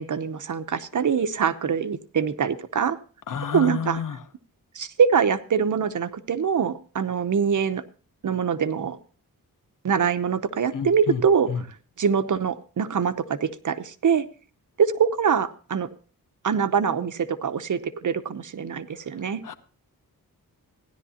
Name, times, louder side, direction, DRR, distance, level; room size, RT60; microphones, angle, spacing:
voice 1, 0.0-3.0 3.5-4.0 4.7-7.8 8.2-9.0 9.8-11.5 12.0-14.3 14.8-15.9 16.4-19.4, right 7 dB, 60° right, 11 dB, 0.8 m, -24 dB
voice 2, 3.3-4.2 10.7-11.2 11.5-11.6 19.1-19.5, left 7 dB, 65° left, 10 dB, 1.1 m, -30 dB
16.0 x 11.0 x 2.8 m, 0.40 s
wide cardioid pair, 90°, 35 cm